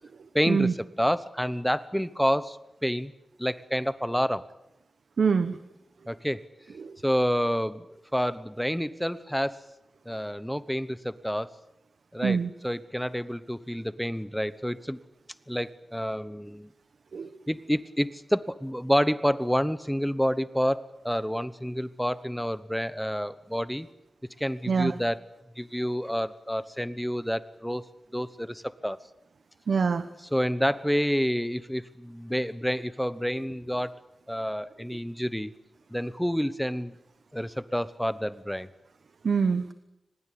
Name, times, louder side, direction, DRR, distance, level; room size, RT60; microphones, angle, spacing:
voice 1, 0.3-3.1 3.4-4.5 6.1-6.4 7.0-7.9 8.1-9.7 10.1-11.5 12.1-15.0 15.5-16.7 17.5-23.9 24.4-25.3 25.6-27.8 28.1-29.0 30.2-33.9 34.3-35.5 35.9-36.9 37.3-38.7, equal, ahead, 15 dB, 0.9 m, -28 dB
voice 2, 5.2-5.6 6.8-6.9 12.2-12.5 17.1-17.3 24.7-24.9 29.7-30.0 39.2-39.7, right 5 dB, 65° right, 12 dB, 1.1 m, -24 dB
24.0 x 20.5 x 8.4 m, 0.87 s
wide cardioid pair, 135°, 0 cm